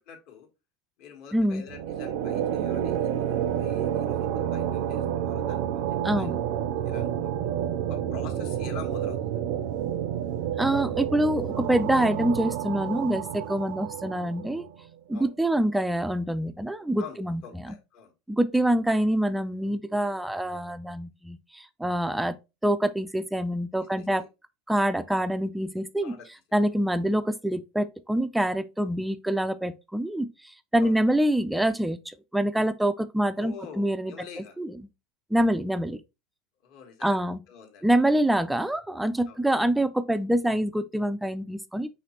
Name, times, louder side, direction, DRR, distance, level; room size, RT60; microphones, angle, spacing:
voice 1, 0.1-0.5 1.0-6.3 6.8-7.3 7.9-9.3 15.1-15.3 17.0-18.1 24.0-24.3 26.0-26.3 30.8-31.0 33.4-34.6 36.6-37.2 37.5-37.9 38.3-38.4 39.3-39.4, left 6 dB, 55° left, 1.4 m, -46 dB
voice 2, 1.3-1.7 6.0-6.4 10.6-14.7 15.1-17.7 18.3-22.4 22.6-24.2 24.7-26.1 26.5-34.1 34.6-34.8 35.3-36.0 37.0-37.4 37.8-41.9, right 1 dB, 5° right, 0.3 m, -26 dB
sound 1, 1.7-14.8, right 10 dB, 65° right, 0.5 m, -29 dB
5.0 x 3.2 x 2.9 m
supercardioid pair, 145°, 0 cm